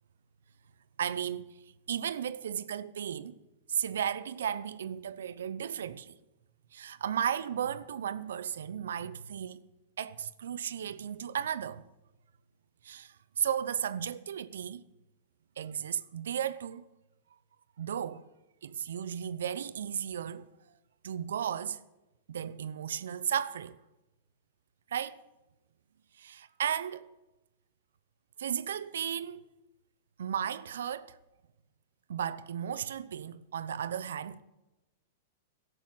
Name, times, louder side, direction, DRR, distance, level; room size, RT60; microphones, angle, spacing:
voice 1, 1.0-1.6 1.9-3.4 3.7-6.2 6.7-9.6 10.0-11.8 12.8-14.8 15.6-16.8 17.8-18.2 18.6-20.5 21.0-21.8 22.3-23.8 24.9-25.2 26.2-27.1 28.4-29.4 30.2-31.2 32.1-34.4, right 9 dB, 85° right, 0.6 m, -34 dB
12.0 x 7.8 x 8.9 m
hypercardioid pair, 130°, 0 cm